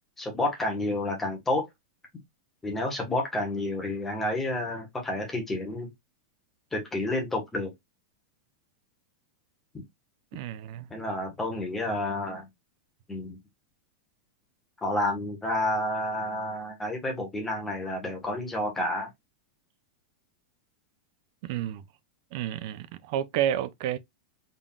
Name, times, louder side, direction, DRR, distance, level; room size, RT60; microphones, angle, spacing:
voice 1, 0.2-1.6 2.6-5.9 6.7-7.7 10.9-12.5 13.1-13.4 14.8-19.1, left 1 dB, 5° left, 1.2 m, -30 dB
voice 2, 10.3-10.9 21.4-21.8 22.3-24.0, right 11 dB, 45° right, 0.4 m, -30 dB
3.7 x 3.7 x 2.3 m
supercardioid pair, 170°, 3 cm